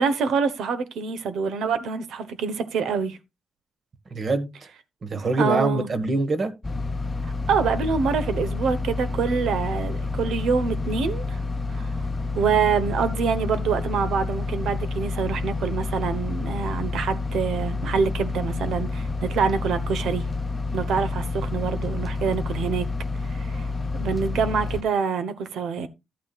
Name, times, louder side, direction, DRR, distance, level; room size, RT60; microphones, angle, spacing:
voice 1, 0.0-3.2 5.2-5.9 7.5-11.4 11.7-11.9 12.3-20.2 20.7-22.9 23.3-23.7 23.9-25.9, right 5 dB, 90° right, 1.1 m, -26 dB
voice 2, 4.1-4.7 5.0-6.5, right 2 dB, 45° right, 1.5 m, -25 dB
sound 1, 6.6-24.8, left 3 dB, 20° left, 0.7 m, -29 dB
12.5 x 8.5 x 2.4 m
cardioid pair, 95°, 0 cm